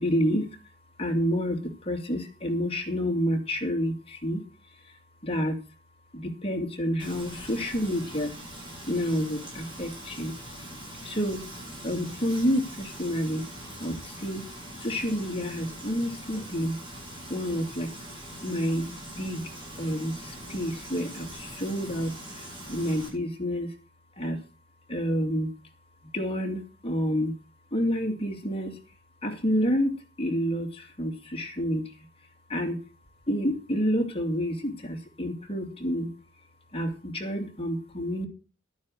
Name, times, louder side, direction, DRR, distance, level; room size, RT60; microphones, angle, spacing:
voice 1, 0.0-0.5 1.0-4.4 5.2-5.6 6.1-8.3 8.9-10.3 11.0-11.4 11.8-13.4 13.8-14.4 14.8-16.8 17.3-17.9 18.4-19.4 19.8-22.1 22.7-23.7 24.2-24.4 24.9-25.5 26.1-27.3 27.7-28.7 29.2-31.8 32.5-32.8 33.3-36.1 36.7-38.3, equal, 30° left, 3 dB, 2.6 m, -29 dB
Frying (food), 7.0-23.1, right 1 dB, 25° right, 7.6 m, -42 dB
11.5 x 9.6 x 6.4 m, 0.32 s
head